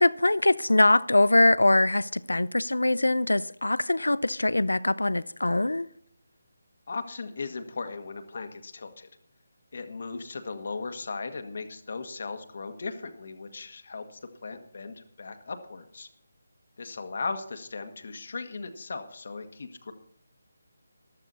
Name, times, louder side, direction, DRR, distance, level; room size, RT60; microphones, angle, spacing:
voice 1, 0.0-5.9, left 2 dB, 85° left, 0.6 m, -22 dB
voice 2, 6.9-9.1 9.7-16.1 16.8-19.9, left 4 dB, 55° left, 1.7 m, -37 dB
14.0 x 12.0 x 4.1 m
figure-of-eight pair, 155°, 0 cm